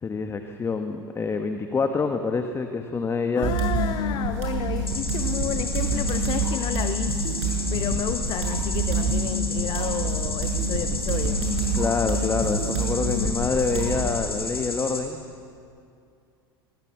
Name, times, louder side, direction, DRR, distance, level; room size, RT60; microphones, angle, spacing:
voice 1, 0.0-3.5 11.7-15.2, left 4 dB, 20° left, 6 dB, 1.3 m, -26 dB
voice 2, 3.3-7.2 7.7-11.4, left 10 dB, 40° left, 10 dB, 1.0 m, -32 dB
sound 1, 3.4-14.1, right 2 dB, 50° right, 7.3 m, -27 dB
sound 2, 4.9-15.0, left 4 dB, 80° left, 3.8 m, -33 dB
24.5 x 19.5 x 7.2 m, 2.5 s
figure-of-eight pair, 80°, 13 cm